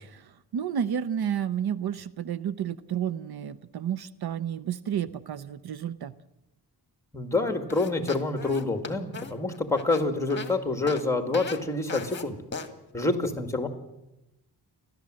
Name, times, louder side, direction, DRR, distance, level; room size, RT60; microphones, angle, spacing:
voice 1, 0.1-6.1, right 8 dB, 65° right, 16 dB, 0.7 m, -31 dB
voice 2, 7.1-12.4 12.9-13.7, left 3 dB, 5° left, 7 dB, 2.1 m, -27 dB
sound 1, 7.7-10.5 10.9-11.0 11.3-11.6 11.9-12.2 12.5-12.7, left 4 dB, 25° left, 1.7 m, -37 dB
29.5 x 12.5 x 7.7 m, 0.93 s
wide cardioid pair, 150°, 40 cm